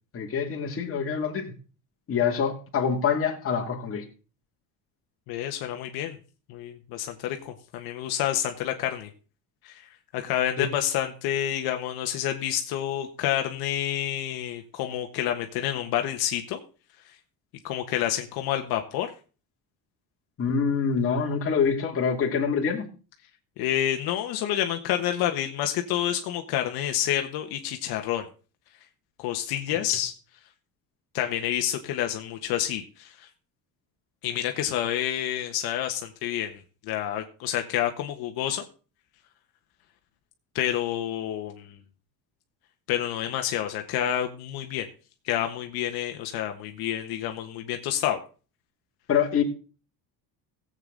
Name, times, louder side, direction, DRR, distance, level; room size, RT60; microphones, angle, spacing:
voice 1, 0.1-1.5 2.1-4.1 10.6-10.7 20.4-22.9 49.1-49.4, left 6 dB, 35° left, 2.6 m, -25 dB
voice 2, 5.3-6.2 6.5-9.1 9.6-16.6 17.6-19.1 23.6-28.3 29.2-30.1 31.1-33.3 34.2-38.7 40.5-41.8 42.9-44.9 45.2-48.2, left 11 dB, 75° left, 1.3 m, -29 dB
16.5 x 8.1 x 3.9 m
cardioid pair, 135°, 37 cm